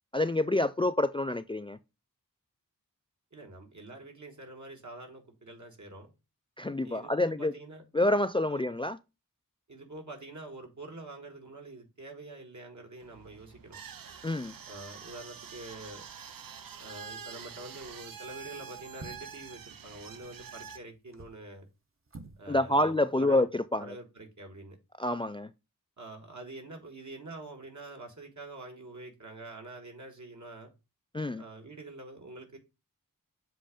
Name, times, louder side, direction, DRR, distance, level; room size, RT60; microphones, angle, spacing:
voice 1, 0.1-1.8 6.6-7.5 7.9-9.0 14.2-14.5 22.5-23.8 25.0-25.5 31.1-31.4, left 1 dB, 15° left, 0.3 m, -27 dB
voice 2, 3.3-6.1 6.8-7.8 8.5-8.6 9.7-13.8 14.7-16.0 16.8-21.7 22.4-23.5 23.8-24.8 26.0-30.7 31.4-32.6, right 2 dB, 60° right, 1.7 m, -46 dB
sound 1, 13.0-20.8, right 7 dB, 85° right, 0.6 m, -46 dB
sound 2, 17.9-18.1 18.9-19.5 20.9-21.4 22.1-22.5 22.7-22.8, right 3 dB, 40° right, 0.9 m, -48 dB
7.6 x 2.5 x 4.9 m
wide cardioid pair, 55°, 34 cm